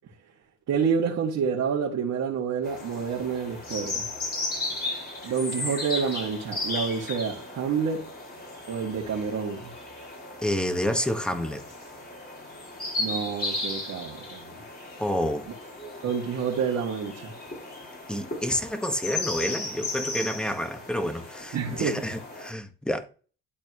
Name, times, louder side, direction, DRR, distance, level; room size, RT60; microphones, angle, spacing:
voice 1, 0.7-4.1 5.2-8.1 8.7-9.7 13.0-14.6 16.0-17.3 21.5-22.0, right 6 dB, 70° right, 2.2 m, -28 dB
sound 1, 2.6-22.5, left 2 dB, 30° left, 4.1 m, -36 dB
voice 2, 10.4-11.6 15.0-15.5 18.1-23.1, equal, 5° left, 1.5 m, -29 dB
12.0 x 4.3 x 3.1 m
cardioid pair, 90°, 30 cm